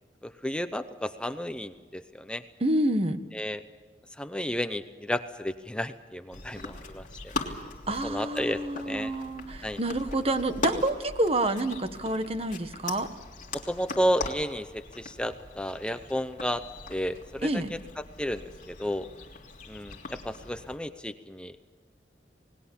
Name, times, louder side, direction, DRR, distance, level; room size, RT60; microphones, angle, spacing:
voice 1, 0.2-2.4 3.3-3.6 4.2-7.0 8.0-9.1 9.6-9.8 13.5-16.6 16.9-17.8 18.2-19.1 19.7-21.6, equal, 5° left, 9 dB, 0.7 m, -32 dB
voice 2, 2.6-3.2 7.9-13.1 17.4-17.7, right 1 dB, 35° right, 9 dB, 1.4 m, -28 dB
sound 1, 6.3-20.8, left 3 dB, 45° left, 3.1 m, -40 dB
28.5 x 19.5 x 7.2 m, 1.4 s
head